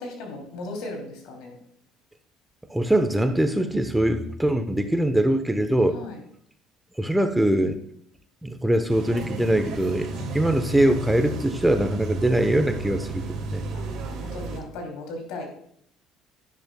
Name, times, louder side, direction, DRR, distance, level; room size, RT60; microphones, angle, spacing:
voice 1, 0.0-1.6 5.9-6.2 10.1-10.4 13.7-15.5, left 2 dB, 75° left, 2 dB, 3.0 m, -37 dB
voice 2, 2.7-6.0 7.0-7.8 8.4-13.6, right 1 dB, 5° right, 8 dB, 0.9 m, -22 dB
sound 1, 8.9-14.6, right 2 dB, 65° right, 2.2 m, -33 dB
11.0 x 10.5 x 2.3 m, 0.69 s
supercardioid pair, 80°, 0 cm